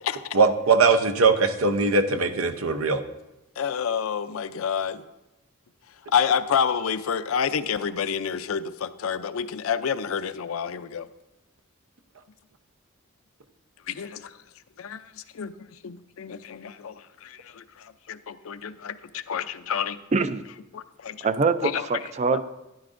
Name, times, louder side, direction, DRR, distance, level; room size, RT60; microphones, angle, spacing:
voice 1, 0.3-3.0, right 4 dB, 80° right, 7 dB, 0.8 m, -20 dB
voice 2, 3.6-5.0 6.1-11.1 13.9-14.3 14.8-15.0 15.3-15.5 15.8-16.9 17.2-17.6 18.1-20.0 20.7-21.3 21.6-21.9 22.3-22.4, left 7 dB, 75° left, 12 dB, 0.5 m, -28 dB
voice 3, 20.1-20.4 21.2-22.4, right 4 dB, 35° right, 13 dB, 0.4 m, -24 dB
12.5 x 11.0 x 2.6 m, 0.97 s
head